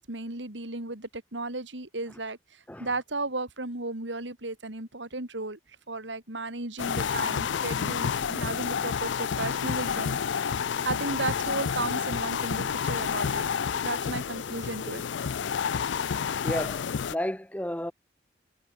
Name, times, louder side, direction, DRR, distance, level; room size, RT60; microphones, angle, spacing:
voice 1, 0.0-5.6 5.9-10.2 10.5-13.5 13.8-15.0, right 2 dB, 80° right, 3.5 m, -34 dB
sound 1, 6.8-17.2, left 7 dB, 80° left, 0.4 m, -29 dB
voice 2, 16.4-17.9, left 1 dB, 10° left, 1.1 m, -34 dB
head